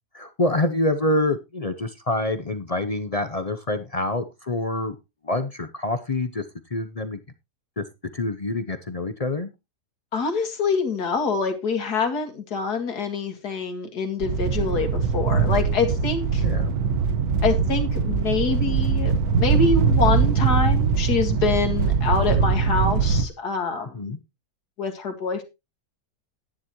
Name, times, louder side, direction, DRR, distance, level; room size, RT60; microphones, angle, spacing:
voice 1, 0.1-5.0 5.2-6.4 6.7-7.2 7.8-7.9 8.1-9.5 16.4-16.7 23.9-24.2, left 2 dB, 45° left, 9 dB, 0.4 m, -26 dB
voice 2, 10.1-16.4 17.4-24.1 24.8-25.4, left 4 dB, 70° left, 6 dB, 2.4 m, -25 dB
sound 1, 14.2-23.2, right 5 dB, 65° right, 1.4 m, -22 dB
11.5 x 9.9 x 3.0 m, 0.25 s
omnidirectional pair, 1.8 m